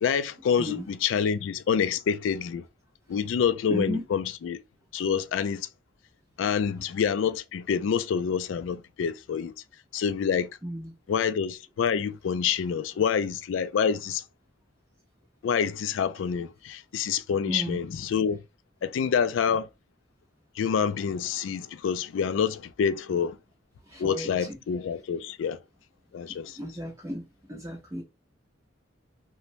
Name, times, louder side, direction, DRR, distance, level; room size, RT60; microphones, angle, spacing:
voice 1, 0.0-2.6 3.1-4.6 4.9-5.7 6.4-9.5 9.9-10.5 11.1-14.2 15.4-18.4 18.8-19.7 20.6-23.4 24.0-25.6 26.1-26.6, left 7 dB, 80° left, 0.3 m, -27 dB
voice 2, 3.7-4.0 10.6-10.9 17.5-17.8 23.9-24.3 26.6-27.2 27.5-28.0, equal, 15° right, 0.6 m, -33 dB
3.0 x 2.1 x 2.5 m
head